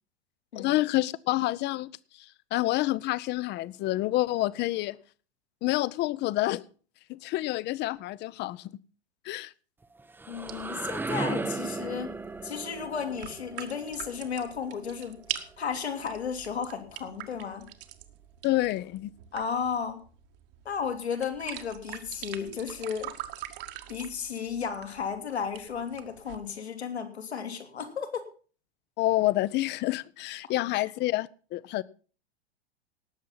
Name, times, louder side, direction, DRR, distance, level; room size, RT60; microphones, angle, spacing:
voice 1, 0.5-1.9 2.2-5.0 5.6-6.6 7.1-8.7 9.2-9.5 18.4-19.1 29.0-31.8, left 17 dB, 35° left, 0.7 m, -28 dB
sound 1, 9.8-15.6, right 3 dB, 5° right, 0.6 m, -37 dB
voice 2, 10.3-12.2 12.4-15.2 15.6-17.7 19.3-20.0 20.6-23.1 23.9-28.2 30.7-30.8, left 6 dB, 85° left, 2.7 m, -34 dB
sound 2, 10.3-26.4, right 13 dB, 60° right, 1.8 m, -44 dB
18.5 x 7.5 x 5.6 m
hypercardioid pair, 95°, 32 cm